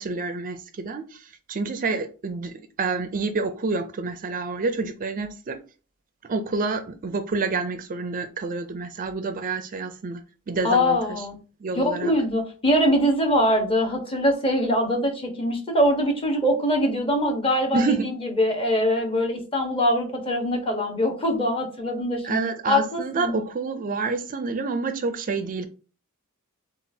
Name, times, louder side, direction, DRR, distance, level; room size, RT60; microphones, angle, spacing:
voice 1, 0.0-5.6 6.2-11.3 11.6-12.1 17.7-18.1 22.2-25.7, right 4 dB, 40° right, 0.4 m, -28 dB
voice 2, 10.6-11.4 11.7-17.8 18.2-22.4 22.7-23.3, equal, 25° left, 1.1 m, -23 dB
6.8 x 2.4 x 2.7 m
head